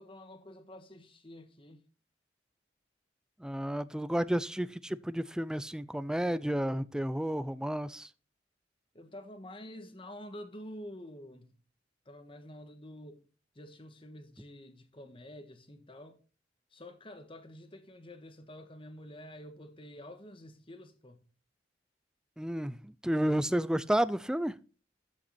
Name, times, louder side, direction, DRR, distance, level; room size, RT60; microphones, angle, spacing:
voice 1, 0.0-1.8 8.9-11.6 12.0-13.2 13.5-16.2 16.7-21.3, left 1 dB, 30° left, 1.5 m, -48 dB
voice 2, 3.4-8.1 22.4-24.6, right 1 dB, 5° right, 0.4 m, -31 dB
13.5 x 5.7 x 4.3 m
head